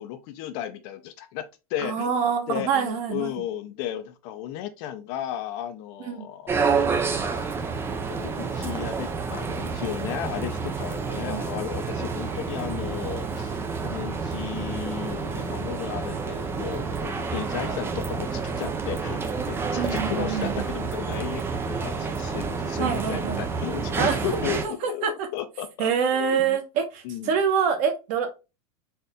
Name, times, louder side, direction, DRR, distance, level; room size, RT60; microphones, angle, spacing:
voice 1, 0.0-2.1 2.5-6.6 8.1-26.6 27.0-27.3, left 11 dB, 50° left, 0.6 m, -34 dB
voice 2, 1.8-3.3 6.0-6.3 11.2-11.5 19.8-20.6 22.8-23.4 24.0-24.2 24.6-25.3 25.8-28.3, right 7 dB, 45° right, 1.0 m, -26 dB
sound 1, 6.5-24.7, right 5 dB, 10° right, 0.4 m, -29 dB
4.2 x 2.5 x 3.5 m
supercardioid pair, 150°, 19 cm